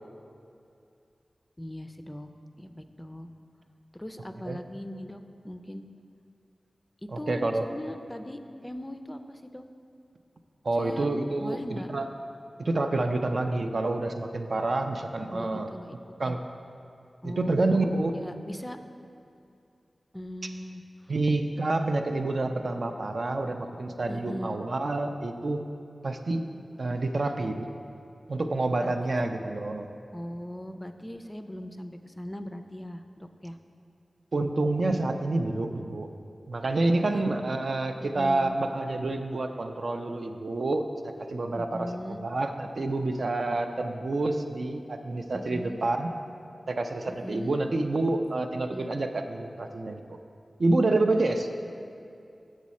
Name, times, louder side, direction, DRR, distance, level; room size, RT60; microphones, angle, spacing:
voice 1, 1.6-2.3 2.6-3.3 3.9-5.8 7.0-9.6 10.8-11.1 11.4-11.9 15.3-16.0 16.2-16.4 17.2-17.6 18.1-18.8 20.1-21.1 24.1-24.6 28.8-28.9 30.1-33.6 36.9-37.2 38.0-38.6 41.6-42.2 45.3-45.8 47.1-47.6 48.7-48.9, equal, 15° left, 8 dB, 0.4 m, -39 dB
voice 2, 7.1-7.7 10.6-12.1 12.6-15.7 16.2-16.4 17.2-18.2 20.4-20.5 21.1-25.7 26.0-26.5 26.8-27.7 28.3-29.9 34.3-36.1 36.5-46.1 46.7-50.2 50.6-51.5, right 2 dB, 65° right, 5 dB, 0.4 m, -28 dB
7.2 x 6.3 x 4.2 m, 2.5 s
wide cardioid pair, 65°, 0 cm